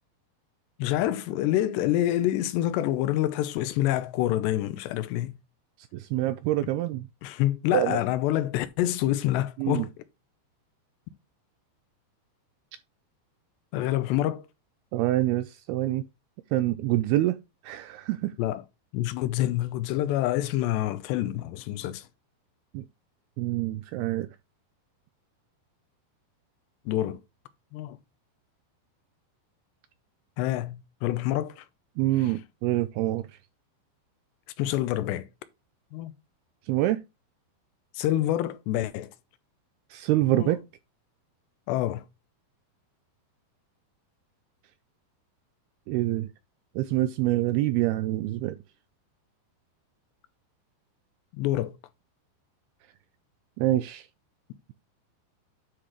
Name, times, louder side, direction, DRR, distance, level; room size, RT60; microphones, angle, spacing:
voice 1, 0.8-5.4 7.2-9.9 13.7-14.4 18.4-18.6 18.9-22.0 26.9-27.2 27.7-28.0 30.4-31.6 34.6-35.3 35.9-36.1 37.9-39.1 40.3-40.5 41.7-42.0 51.3-51.8, left 14 dB, 80° left, 2.8 m, -27 dB
voice 2, 5.9-7.1 7.7-8.0 9.6-9.9 14.9-16.0 16.5-17.4 17.6-18.3 22.7-22.8 23.4-24.3 32.0-33.2 36.7-37.0 39.9-40.6 45.9-46.3 46.8-48.6 53.6-54.1, right 15 dB, 80° right, 2.3 m, -26 dB
9.9 x 6.0 x 3.1 m
omnidirectional pair, 5.0 m